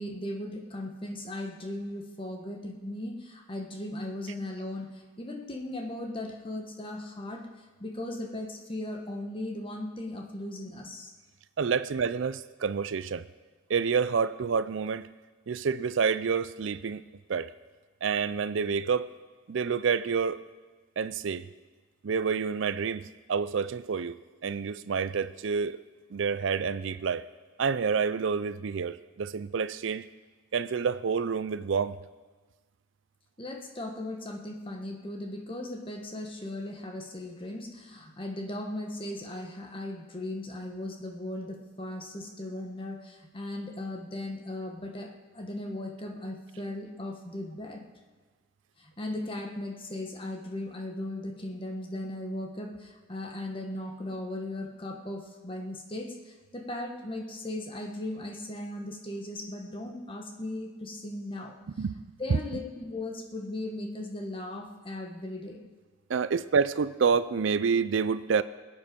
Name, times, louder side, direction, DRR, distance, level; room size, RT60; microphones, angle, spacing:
voice 1, 0.0-11.1 33.4-47.8 48.8-61.8 62.2-65.6, left 1 dB, 25° left, 3 dB, 1.4 m, -37 dB
voice 2, 11.6-13.2 13.7-15.1 15.5-17.0 17.3-17.5 18.0-19.1 19.5-20.4 21.0-21.5 22.0-23.0 23.3-24.2 24.4-25.8 26.1-27.3 27.6-30.0 30.5-32.0 61.8-61.9 62.3-62.4 66.1-68.4, right 5 dB, 70° right, 16 dB, 0.4 m, -28 dB
23.0 x 8.9 x 5.3 m, 1.3 s
head